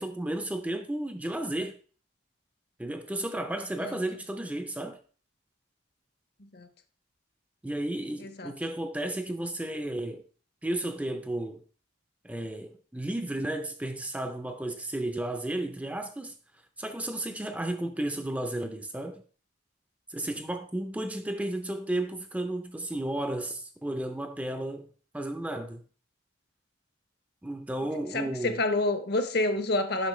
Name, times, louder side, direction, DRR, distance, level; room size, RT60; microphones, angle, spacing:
voice 1, 0.0-1.8 2.8-5.0 7.6-10.2 10.6-11.6 12.2-16.4 16.8-19.2 20.1-24.9 25.1-25.8 27.4-28.6, right 1 dB, 10° right, 0.4 m, -33 dB
voice 2, 8.2-8.5 28.1-30.1, left 2 dB, 55° left, 0.8 m, -28 dB
8.2 x 5.6 x 3.2 m
head